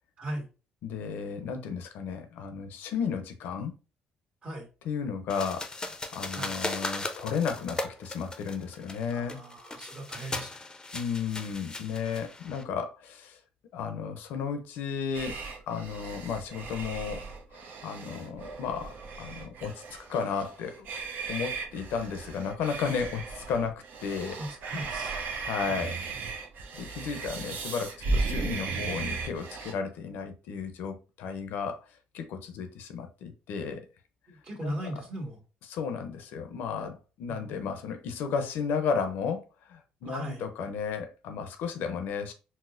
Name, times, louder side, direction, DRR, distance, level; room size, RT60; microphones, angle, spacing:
voice 1, 0.8-3.7 4.8-9.4 10.9-13.4 13.7-15.4 15.7-17.3 17.5-20.9 21.3-24.4 25.4-26.0 26.7-31.8 32.1-33.8 34.6-35.0 35.6-42.3, left 6 dB, 75° left, 0.6 m, -34 dB
sound 1, 5.3-12.6, left 2 dB, 20° left, 0.5 m, -37 dB
voice 2, 9.1-10.5 24.4-25.2 25.7-25.8 34.3-35.4 37.3-37.5 40.0-40.4, right 1 dB, 40° right, 1.5 m, -38 dB
sound 2, 15.1-29.7, right 4 dB, 65° right, 0.6 m, -36 dB
4.1 x 2.0 x 2.5 m
supercardioid pair, 70°, 3 cm